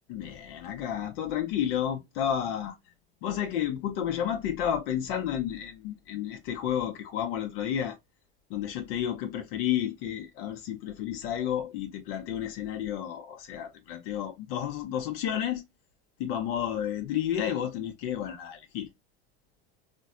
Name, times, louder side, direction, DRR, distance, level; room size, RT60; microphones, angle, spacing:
voice 1, 0.1-2.7 3.2-8.0 8.5-15.6 16.2-18.9, left 10 dB, 70° left, 0.7 m, -31 dB
3.4 x 2.2 x 2.4 m
supercardioid pair, 115°, 30 cm